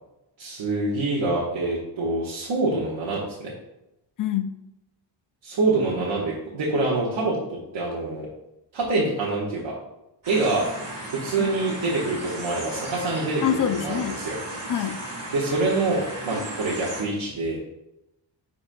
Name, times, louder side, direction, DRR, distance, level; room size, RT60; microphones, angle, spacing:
voice 1, 0.4-3.5 5.4-8.3 8.7-9.7 10.3-10.7 11.1-14.4 15.3-17.6, right 2 dB, 85° right, -6 dB, 1.4 m, -26 dB
voice 2, 4.2-4.5 11.4-11.5 13.4-14.2 14.7-15.0, left 9 dB, 45° left, 10 dB, 0.5 m, -26 dB
sound 1, 10.2-17.0, right 1 dB, 45° right, 2.4 m, -35 dB
10.0 x 4.6 x 2.2 m, 0.89 s
wide cardioid pair, 150°, 45 cm